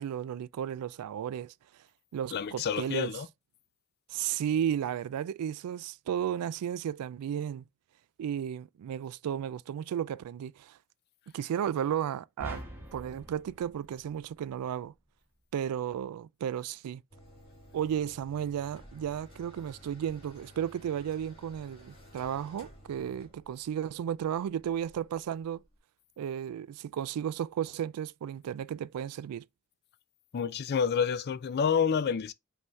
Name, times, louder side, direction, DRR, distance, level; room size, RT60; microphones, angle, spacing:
voice 1, 0.0-1.5 2.1-3.2 4.1-7.6 8.2-10.8 11.3-12.6 12.9-14.9 15.5-17.0 17.7-25.6 26.2-29.5, right 9 dB, 85° right, 0.3 m, -34 dB
voice 2, 2.3-3.3 30.3-32.3, left 7 dB, 50° left, 0.4 m, -28 dB
sound 1, 12.4-14.8, equal, 10° right, 1.1 m, -45 dB
sound 2, 17.1-25.8, equal, 25° left, 2.6 m, -54 dB
5.5 x 2.7 x 3.0 m
head